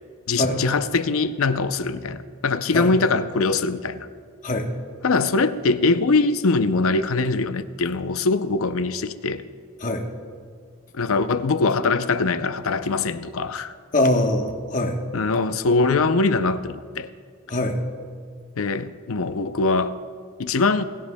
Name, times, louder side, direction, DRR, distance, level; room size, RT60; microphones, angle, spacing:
voice 1, 0.3-4.1 5.0-9.4 10.9-13.7 15.1-17.1 18.6-20.0 20.4-20.8, left 3 dB, 80° left, 0.6 m, -22 dB
voice 2, 13.9-15.0 17.5-17.8, left 1 dB, 35° left, 1.1 m, -22 dB
20.0 x 16.5 x 2.2 m
head